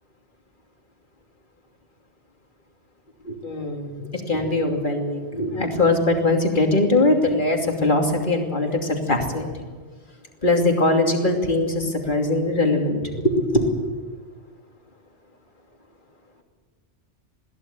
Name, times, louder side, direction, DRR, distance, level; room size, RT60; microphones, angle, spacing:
voice 1, 3.2-9.7 10.4-13.9, left 2 dB, 45° left, 2 dB, 2.9 m, -21 dB
21.5 x 15.5 x 8.5 m, 1.5 s
omnidirectional pair, 1.2 m